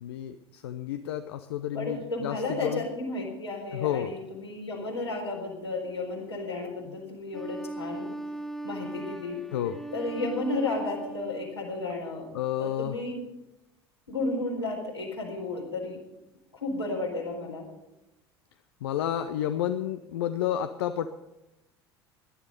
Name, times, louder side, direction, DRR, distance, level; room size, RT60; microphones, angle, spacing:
voice 1, 0.0-2.8 3.7-4.1 9.5-9.8 12.3-13.0 18.8-21.1, left 11 dB, 70° left, 9 dB, 0.7 m, -31 dB
voice 2, 1.7-8.1 8.6-9.4 9.9-12.3 12.6-13.2 14.1-16.0 16.5-17.7, left 2 dB, 90° left, -3 dB, 4.3 m, -33 dB
Wind instrument woodwind instrument, 7.3-11.6, right 2 dB, 5° left, 1.7 m, -39 dB
18.0 x 11.5 x 5.2 m, 0.97 s
figure-of-eight pair, 65°, 14 cm